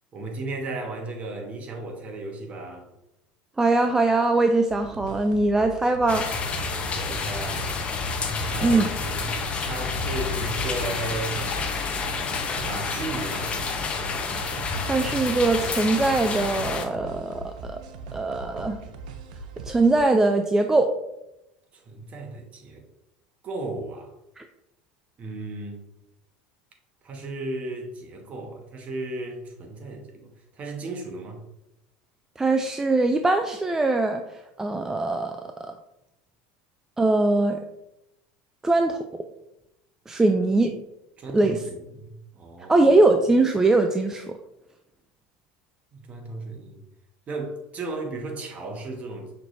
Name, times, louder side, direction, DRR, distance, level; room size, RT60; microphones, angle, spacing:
voice 1, 0.1-2.9 6.9-7.7 8.5-12.3 12.6-13.5 21.7-22.8 23.4-24.1 25.2-25.8 27.0-31.4 41.2-42.9 45.9-46.8 47.3-49.3, right 2 dB, 35° right, 3 dB, 1.0 m, -35 dB
voice 2, 3.6-6.2 8.6-8.9 14.9-17.8 18.1-18.8 19.7-20.9 24.4-24.5 32.4-35.7 37.0-37.6 38.6-39.0 40.1-40.8 41.3-41.6 42.7-44.3, right 2 dB, 10° right, 5 dB, 0.3 m, -22 dB
sound 1, 4.7-20.0, right 4 dB, 80° right, 0.5 m, -40 dB
sound 2, 6.1-16.9, left 4 dB, 30° left, 0.7 m, -29 dB
5.8 x 3.2 x 2.6 m, 0.87 s
supercardioid pair, 100°, 4 cm